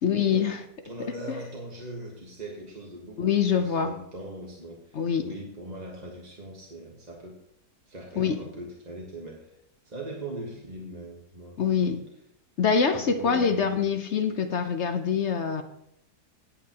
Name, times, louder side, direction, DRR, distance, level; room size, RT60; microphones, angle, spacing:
voice 1, 0.0-0.6 3.2-3.9 4.9-5.3 8.2-8.4 11.6-12.1 12.6-15.6, left 6 dB, 55° left, 0.9 m, -25 dB
voice 2, 0.8-7.4 7.9-9.6 9.8-11.9 12.9-13.8, right 1 dB, 30° right, 1.2 m, -40 dB
17.0 x 8.5 x 2.9 m
omnidirectional pair, 1.7 m